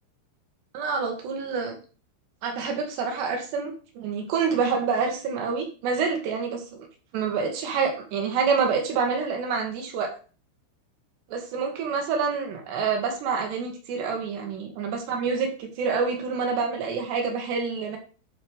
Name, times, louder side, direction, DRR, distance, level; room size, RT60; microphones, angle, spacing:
voice 1, 0.7-1.8 2.4-6.9 7.1-10.1 11.3-18.0, right 5 dB, 60° right, 3 dB, 3.9 m, -27 dB
11.5 x 5.7 x 4.9 m, 0.37 s
omnidirectional pair, 5.8 m